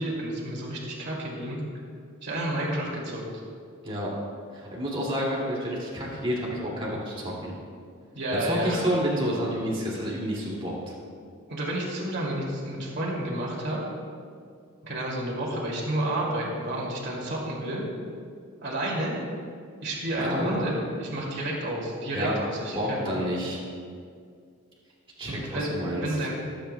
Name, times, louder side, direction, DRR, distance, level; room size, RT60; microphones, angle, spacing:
voice 1, 0.0-1.6 2.2-3.2 8.1-8.9 11.5-13.8 14.8-17.8 18.6-19.1 19.8-23.1 25.3-26.3, right 1 dB, 50° right, -3 dB, 2.5 m, -30 dB
voice 2, 4.5-7.5 8.4-10.9 20.1-20.7 22.1-22.3 22.7-23.6 25.2-26.0, equal, 25° right, -5 dB, 2.3 m, -29 dB
18.5 x 8.9 x 2.2 m, 2.2 s
head